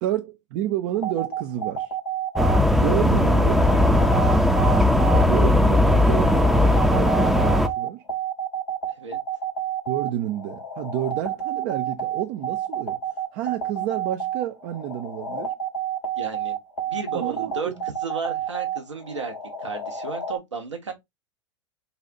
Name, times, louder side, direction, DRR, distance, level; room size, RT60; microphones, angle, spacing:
voice 1, 0.0-1.9 2.8-3.7 5.0-6.4 6.9-8.0 9.9-13.0 13.3-15.5 17.1-17.7, right 12 dB, 45° right, 0.5 m, -29 dB
sound 1, 0.9-20.4, right 7 dB, 85° left, 1.4 m, -30 dB
sound 2, 2.4-7.7, left 1 dB, ahead, 0.6 m, -18 dB
voice 2, 16.1-16.6 16.9-19.3 19.6-20.9, right 4 dB, 85° right, 1.3 m, -33 dB
4.1 x 2.4 x 3.9 m
figure-of-eight pair, 85°, 15 cm